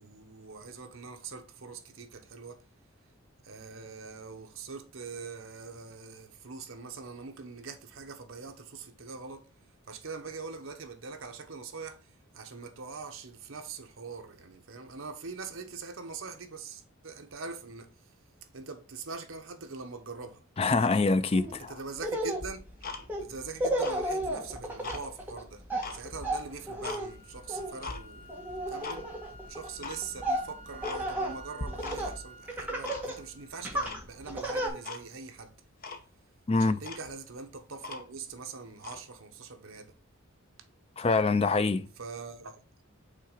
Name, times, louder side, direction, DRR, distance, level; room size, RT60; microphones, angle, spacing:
voice 1, 0.0-2.6 3.4-9.5 9.9-12.0 12.3-17.9 18.5-20.4 21.6-22.6 23.2-25.6 25.9-29.1 29.5-35.5 36.6-39.9 42.0-42.6, right 4 dB, 65° right, 1.0 m, -43 dB
voice 2, 20.6-21.7 36.5-36.8 41.0-41.9, left 3 dB, 25° left, 0.4 m, -25 dB
Laughter, 21.3-21.5 21.9-32.2 32.5-33.2 33.6-34.7, right 1 dB, 10° right, 1.4 m, -34 dB
Tick-tock, 22.4-23.4 23.7-25.0 25.5-27.0 27.4-28.0 28.5-29.0 29.3-29.4 29.8-30.0 30.4-30.5 30.8-31.3 31.6-32.2 32.5-33.3 33.8-34.4 34.8-35.0 35.4-35.5 35.8-36.1 36.5-36.6 36.8-38.3 38.8-39.0, left 3 dB, 45° left, 0.8 m, -41 dB
sound 1, 27.0-35.0, right 3 dB, 70° left, 3.1 m, -52 dB
5.6 x 3.7 x 4.9 m
head